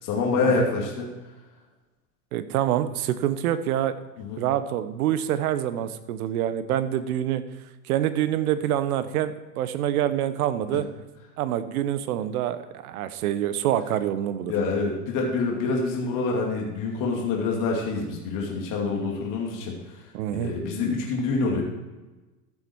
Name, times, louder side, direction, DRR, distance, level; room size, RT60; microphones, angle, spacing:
voice 1, 0.0-1.1 4.2-4.4 10.7-10.8 14.5-20.0 20.3-21.6, left 4 dB, 40° left, -1 dB, 2.6 m, -26 dB
voice 2, 2.3-4.0 4.4-7.4 7.8-10.9 11.4-14.5 20.1-20.5, right 11 dB, 65° right, 13 dB, 1.1 m, -26 dB
14.0 x 7.3 x 4.6 m, 1.1 s
hypercardioid pair, 105°, 47 cm